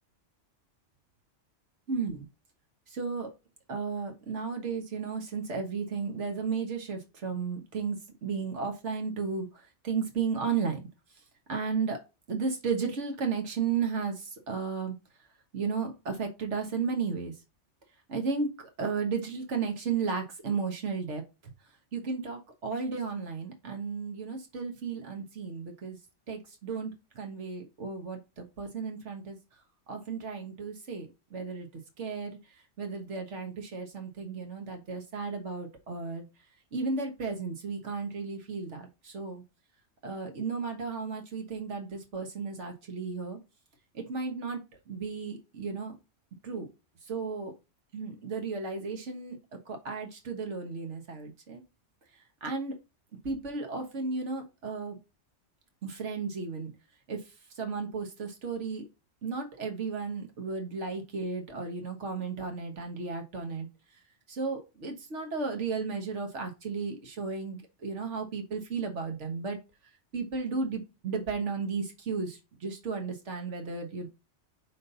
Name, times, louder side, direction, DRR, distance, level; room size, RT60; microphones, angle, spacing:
voice 1, 1.9-2.2 2.9-3.3 3.7-9.5 9.8-10.8 11.5-12.0 12.3-15.0 15.5-17.3 18.1-18.5 18.8-21.2 21.9-26.0 26.3-29.4 29.9-31.7 32.0-32.4 32.8-36.3 36.7-39.4 40.0-43.4 43.9-44.6 44.9-45.9 46.4-46.7 47.1-47.5 47.9-49.4 49.7-51.6 52.4-52.7 53.2-55.0 55.8-56.7 57.1-57.2 57.6-58.9 59.2-63.7 64.3-69.6 70.1-74.1, right 5 dB, 70° right, 4 dB, 1.6 m, -34 dB
5.4 x 3.8 x 2.6 m, 0.26 s
omnidirectional pair, 1.2 m